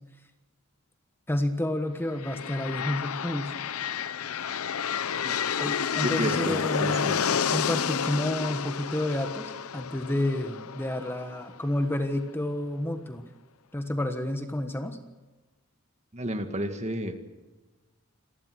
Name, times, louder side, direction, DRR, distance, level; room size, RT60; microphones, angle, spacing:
voice 1, 1.3-3.5 5.6-13.2 13.7-15.0, left 1 dB, 10° left, 7 dB, 1.3 m, -30 dB
sound 1, 2.1-11.9, left 7 dB, 90° left, 0.7 m, -30 dB
voice 2, 6.2-7.4 16.1-17.2, right 1 dB, 30° right, 7 dB, 2.0 m, -32 dB
26.5 x 19.5 x 6.3 m, 1.2 s
head